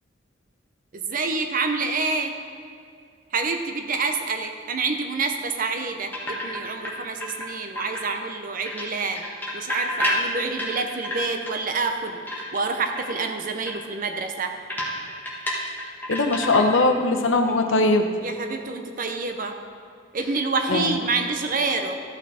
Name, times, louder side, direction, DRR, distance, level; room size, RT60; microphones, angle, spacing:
voice 1, 0.9-2.4 3.3-9.2 9.5-14.5 18.2-19.6 20.1-22.0, right 4 dB, 45° right, 5 dB, 0.7 m, -27 dB
sound 1, 6.1-6.9 7.2-8.3 8.7-11.6 11.9-12.7 13.0-13.2 13.7-13.8 14.0-14.1 14.7-16.9 17.2-17.5, left 1 dB, 10° left, 1.7 m, -30 dB
voice 2, 16.1-18.1 20.7-20.9, left 2 dB, 90° left, 5 dB, 0.9 m, -20 dB
13.0 x 5.9 x 4.2 m, 2.5 s
head